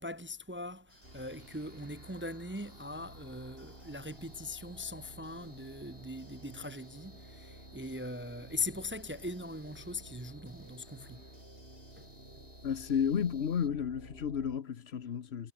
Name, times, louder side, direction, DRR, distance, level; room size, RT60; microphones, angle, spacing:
voice 1, 0.0-11.2 12.0-12.1, left 2 dB, 15° right, 0.6 m, -41 dB
sound 1, 0.9-13.7, left 1 dB, 35° left, 7.0 m, -62 dB
sound 2, 0.9-11.5, right 2 dB, 85° right, 6.1 m, -68 dB
sound 3, 1.0-14.6, right 1 dB, 60° right, 7.6 m, -53 dB
voice 2, 12.6-15.5, left 8 dB, 75° left, 1.2 m, -32 dB
omnidirectional pair, 1.1 m